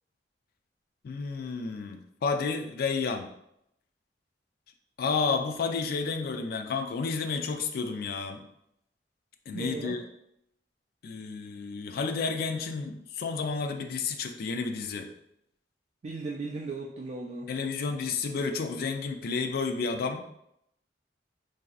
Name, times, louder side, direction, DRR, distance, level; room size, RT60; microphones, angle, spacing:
voice 1, 1.0-3.3 5.0-8.4 9.5-10.0 11.0-15.1 17.5-20.3, left 4 dB, 55° left, 5 dB, 0.3 m, -31 dB
voice 2, 9.5-10.0 16.0-17.5, right 3 dB, 40° right, -2 dB, 0.3 m, -37 dB
3.9 x 2.6 x 2.4 m, 0.77 s
head